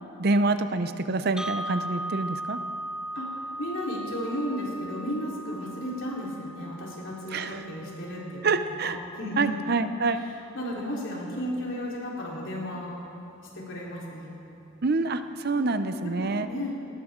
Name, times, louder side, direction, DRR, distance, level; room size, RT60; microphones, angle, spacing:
voice 1, 0.2-2.6 7.3-7.6 8.4-9.0 9.4-10.2 14.8-16.5, right 3 dB, 50° right, 10 dB, 0.6 m, -26 dB
sound 1, 1.4-9.4, right 1 dB, 5° right, 0.4 m, -38 dB
voice 2, 3.1-8.5 8.8-9.6 10.5-13.1 13.5-14.3 15.5-15.7 16.0-16.9, equal, 60° left, -4 dB, 3.9 m, -34 dB
19.5 x 19.0 x 3.8 m, 3.0 s
head